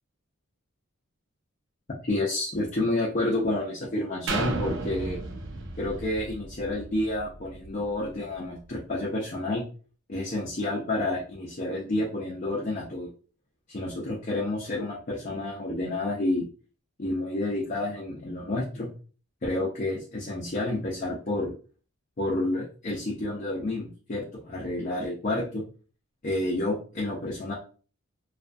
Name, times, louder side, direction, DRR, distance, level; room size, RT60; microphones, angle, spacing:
voice 1, 2.1-5.2 5.8-9.6 10.1-13.1 13.7-16.5 17.0-18.9 19.4-21.5 22.2-25.6 26.2-27.5, left 2 dB, 35° left, -4 dB, 0.4 m, -29 dB
sound 1, 4.3-8.1 8.6-8.7, right 3 dB, 60° right, 0.5 m, -34 dB
2.3 x 2.2 x 2.5 m, 0.38 s
head